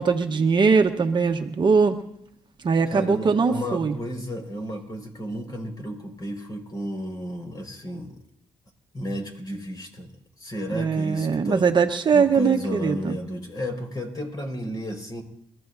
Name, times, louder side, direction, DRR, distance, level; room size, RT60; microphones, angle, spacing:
voice 1, 0.0-2.0 2.6-3.9 10.7-13.2, right 5 dB, 40° right, 4 dB, 1.1 m, -21 dB
voice 2, 2.9-8.2 8.9-10.1 10.4-11.7 12.1-15.2, equal, 35° left, 3 dB, 5.0 m, -32 dB
29.5 x 14.0 x 2.7 m, 0.75 s
cardioid pair, 80°, 11 cm